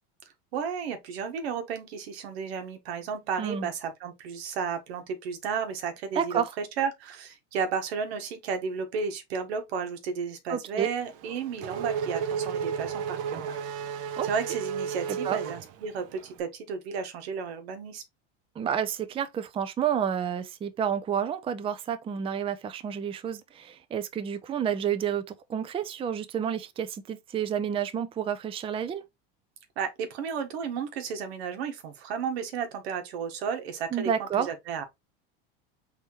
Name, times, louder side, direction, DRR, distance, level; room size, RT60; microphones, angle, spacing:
voice 1, 0.5-13.6 14.2-18.0 29.8-34.8, right 6 dB, 90° right, 1.3 m, -33 dB
voice 2, 3.4-3.7 6.2-6.5 10.5-10.9 14.2-14.3 15.1-15.4 18.6-29.0 33.9-34.5, right 8 dB, 20° right, 0.5 m, -30 dB
Race car auto racing / Accelerating revving vroom, 11.0-16.3, right 7 dB, 50° right, 0.8 m, -33 dB
4.2 x 3.5 x 3.0 m
supercardioid pair, 130°, 31 cm